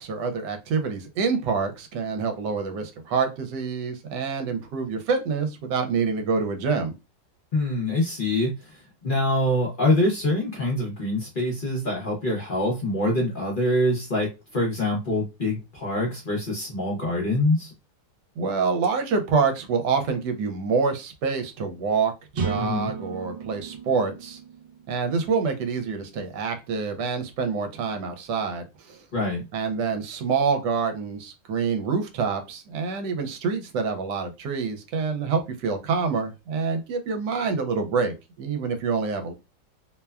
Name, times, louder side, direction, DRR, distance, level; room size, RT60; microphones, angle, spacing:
voice 1, 0.0-6.9 18.4-24.4 24.9-29.0 29.5-39.3, right 5 dB, 75° right, 6 dB, 1.2 m, -26 dB
voice 2, 7.5-17.7 22.5-22.9 29.1-29.5, left 1 dB, 60° left, -2 dB, 0.5 m, -25 dB
sound 1, 22.3-26.1, right 5 dB, 55° right, 0.8 m, -34 dB
2.9 x 2.1 x 2.3 m, 0.26 s
omnidirectional pair, 1.9 m